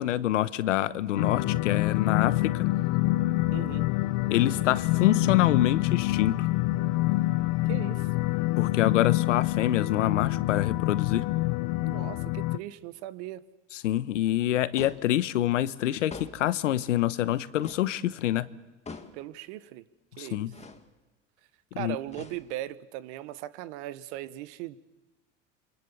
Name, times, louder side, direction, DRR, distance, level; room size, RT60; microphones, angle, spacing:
voice 1, 0.0-2.7 4.3-6.5 8.6-11.3 13.7-18.5 20.2-20.5 21.8-21.9, left 13 dB, 90° left, 1.0 m, -26 dB
sound 1, 1.2-12.6, left 18 dB, 60° left, 0.8 m, -26 dB
voice 2, 3.5-3.9 7.7-8.1 11.8-13.4 19.1-19.8 20.2-20.5 21.8-24.8, right 14 dB, 70° right, 1.3 m, -38 dB
sound 2, 14.8-15.2 16.1-16.6 17.6-17.9 18.9-19.3 20.5-20.9 22.1-22.7, left 4 dB, 20° left, 2.1 m, -44 dB
27.5 x 23.5 x 7.1 m
hypercardioid pair, 90°, 36 cm